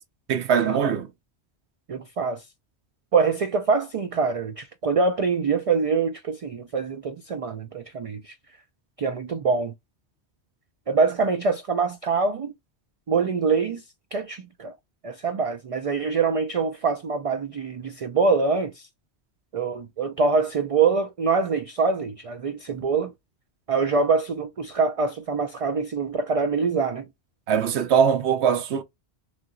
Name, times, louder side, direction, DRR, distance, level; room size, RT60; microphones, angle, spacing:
voice 1, 0.3-1.1 27.5-28.8, right 7 dB, 85° right, 0.9 m, -21 dB
voice 2, 1.9-2.4 3.1-8.3 9.0-9.7 10.9-12.5 13.1-13.8 14.1-14.7 15.0-18.9 19.5-23.1 23.7-27.1, right 4 dB, 65° right, 0.3 m, -24 dB
3.1 x 2.8 x 2.5 m
omnidirectional pair, 1.1 m